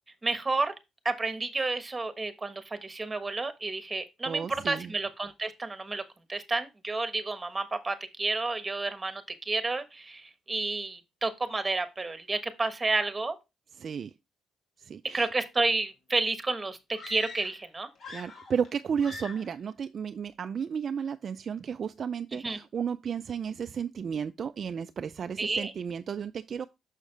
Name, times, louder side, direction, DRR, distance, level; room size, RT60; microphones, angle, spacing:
voice 1, 0.2-0.7 1.0-6.0 6.3-13.3 15.1-17.9 22.4-22.6 25.4-25.7, right 3 dB, 20° right, 1.2 m, -31 dB
voice 2, 4.3-4.9 13.8-14.1 14.8-15.3 18.1-26.7, right 7 dB, 50° right, 0.3 m, -33 dB
sound 1, 16.9-17.7 18.0-18.7 19.0-19.5, left 3 dB, 55° left, 2.2 m, -43 dB
6.4 x 6.3 x 3.2 m
cardioid pair, 90°, 0 cm